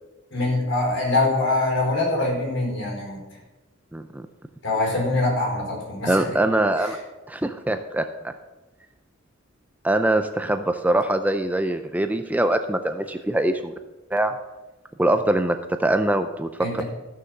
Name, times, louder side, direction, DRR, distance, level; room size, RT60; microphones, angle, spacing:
voice 1, 0.3-3.2 4.6-6.4 16.6-16.8, left 2 dB, 60° left, -1 dB, 4.6 m, -24 dB
voice 2, 3.9-4.3 6.1-7.0 7.3-8.1 9.8-13.7 14.1-14.3 15.0-16.8, right 1 dB, 10° right, 8 dB, 0.4 m, -23 dB
14.0 x 6.5 x 6.5 m, 1.1 s
head